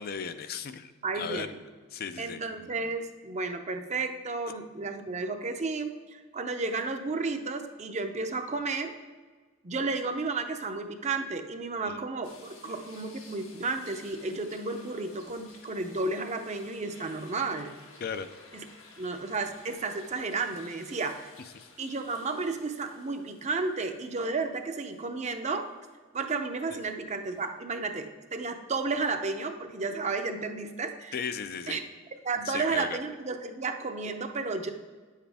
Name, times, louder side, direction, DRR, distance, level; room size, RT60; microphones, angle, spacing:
voice 1, 0.0-1.5 1.9-2.4 11.8-12.0 18.0-18.3 21.5-21.7 26.7-26.8 31.1-31.8 32.5-33.0, left 6 dB, 50° left, 10 dB, 0.4 m, -36 dB
voice 2, 1.0-1.6 2.2-8.9 9.6-17.7 18.5-18.6 19.0-21.3 21.8-25.7 26.1-31.2 31.7-31.8 32.2-34.7, right 3 dB, 35° right, 6 dB, 0.6 m, -32 dB
sound 1, 12.2-24.4 24.9-25.0 27.3-27.5, left 3 dB, 85° left, 1.4 m, -53 dB
9.7 x 7.4 x 3.4 m, 1.4 s
head